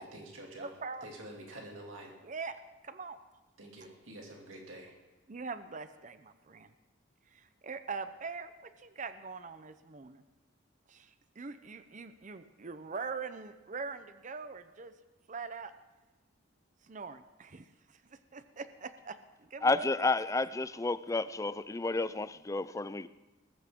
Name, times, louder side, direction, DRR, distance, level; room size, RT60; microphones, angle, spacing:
voice 1, 0.0-0.7 1.0-2.1 3.6-5.0, right 1 dB, 90° right, 2.5 m, -47 dB
voice 2, 0.6-1.1 2.2-2.6 2.8-3.2 5.3-6.7 7.3-10.2 10.9-14.9 15.3-15.7 16.8-19.9, right 4 dB, 40° right, 0.7 m, -43 dB
voice 3, 19.6-23.1, left 3 dB, 15° left, 0.4 m, -31 dB
19.5 x 14.5 x 3.7 m
head